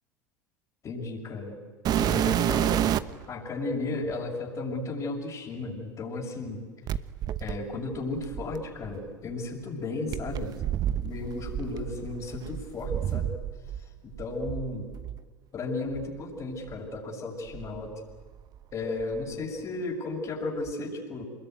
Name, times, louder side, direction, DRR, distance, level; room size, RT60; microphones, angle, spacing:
voice 1, 0.8-1.6 1.9-2.8 3.3-6.7 7.4-10.5 10.9-13.3 14.0-14.9 15.5-18.0 18.7-21.2, left 2 dB, 40° left, -4 dB, 6.6 m, -34 dB
sound 1, 1.8-3.2 4.1-4.2 6.9-8.9 10.1-13.8 14.1-15.2 15.9-16.1 16.7-16.8 17.5-18.6 18.8-19.3 20.7-20.8, right 11 dB, 45° right, 1.1 m, -30 dB
27.5 x 22.0 x 9.5 m, 1.5 s
hypercardioid pair, 80°, 9 cm